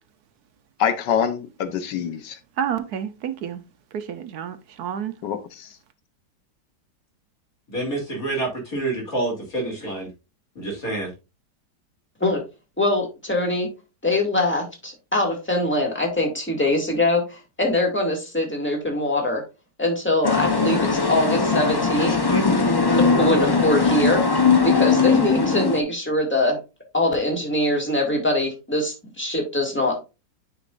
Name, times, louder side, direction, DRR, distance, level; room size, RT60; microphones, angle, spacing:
voice 1, 0.8-2.4 5.2-5.7, left 8 dB, 90° left, 1.6 m, -25 dB
voice 2, 2.6-3.6 3.9-5.1, right 8 dB, 70° right, 1.2 m, -29 dB
voice 3, 7.7-10.1 10.6-11.1, right 2 dB, 55° left, 3.4 m, -27 dB
voice 4, 12.8-13.7 14.0-19.4 19.8-22.1 22.9-24.2 24.6-26.6 26.9-30.0, left 1 dB, 5° left, 2.1 m, -23 dB
sound 1, 20.2-25.8, left 4 dB, 30° left, 0.4 m, -20 dB
9.7 x 5.3 x 2.5 m
omnidirectional pair, 1.8 m